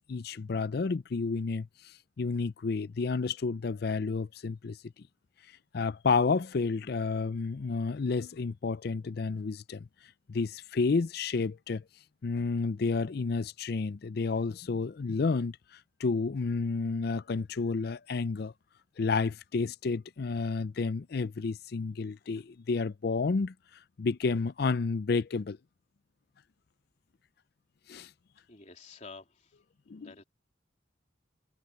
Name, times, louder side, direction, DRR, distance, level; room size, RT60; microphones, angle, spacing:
voice 1, 0.1-4.8 5.7-9.9 10.3-11.8 12.2-18.5 19.0-23.5 24.0-25.6 27.9-28.1 29.9-30.1, left 4 dB, 55° left, 0.4 m, -30 dB
voice 2, 28.5-29.5 30.0-30.2, left 4 dB, 40° left, 3.5 m, -49 dB
head